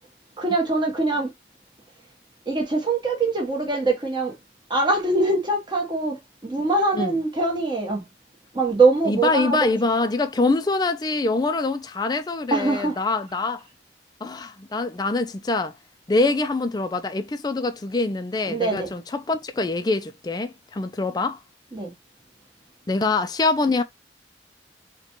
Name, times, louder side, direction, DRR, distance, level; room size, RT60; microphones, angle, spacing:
voice 1, 0.4-1.3 2.5-4.3 4.7-8.1 8.5-9.6 12.5-13.0 18.5-18.9 21.7-21.9, right 3 dB, 25° right, 1.0 m, -23 dB
voice 2, 9.0-13.6 14.2-15.7 16.1-21.4 22.9-23.8, left 3 dB, 20° left, 0.3 m, -24 dB
4.0 x 2.2 x 2.9 m
head